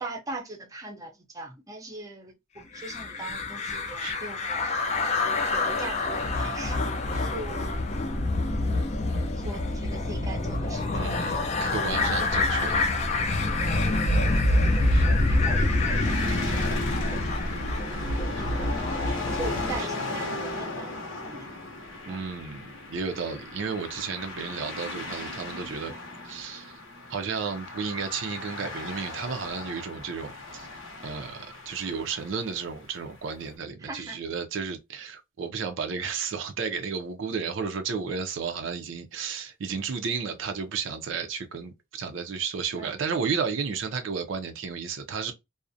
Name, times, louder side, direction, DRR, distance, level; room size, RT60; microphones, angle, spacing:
voice 1, 0.0-5.0 5.5-6.9 7.2-8.3 9.4-10.9 11.3-12.6 13.6-18.8 19.3-21.5 22.1-22.2 33.8-34.2 42.8-42.9, right 2 dB, 15° right, 0.5 m, -41 dB
sound 1, 2.8-19.8, left 2 dB, 35° left, 0.4 m, -26 dB
voice 2, 10.9-12.7 13.3-13.6 14.9-15.1 19.0-19.2 22.1-25.9 26.2-26.8 27.1-30.7 31.0-45.3, right 5 dB, 65° right, 0.4 m, -33 dB
sound 2, 14.7-33.1, left 2 dB, 75° left, 0.7 m, -36 dB
2.4 x 2.0 x 2.5 m
head